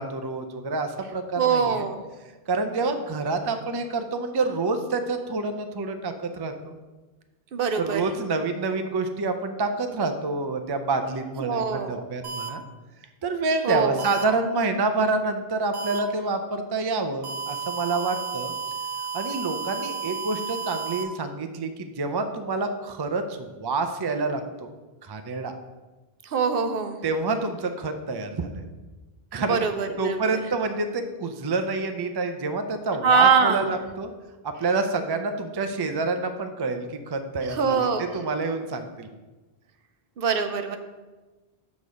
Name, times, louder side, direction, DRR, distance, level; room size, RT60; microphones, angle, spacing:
voice 1, 0.0-1.8 2.5-6.7 7.8-12.6 13.2-18.5 19.1-24.7 25.0-25.5 27.0-28.7 29.3-29.7 30.0-34.1 34.4-37.9 38.1-39.1, right 3 dB, 35° right, 7 dB, 0.4 m, -28 dB
voice 2, 1.4-2.0 7.5-8.0 11.4-12.0 13.6-14.0 26.3-27.0 29.5-30.4 33.0-33.6 37.5-38.0 40.2-40.8, right 5 dB, 65° right, 7 dB, 0.8 m, -23 dB
sound 1, 12.2-12.5 14.0-14.2 15.7-16.0 17.2-21.0, right 6 dB, 90° right, 1.1 m, -32 dB
6.8 x 4.1 x 6.1 m, 1.2 s
omnidirectional pair, 1.1 m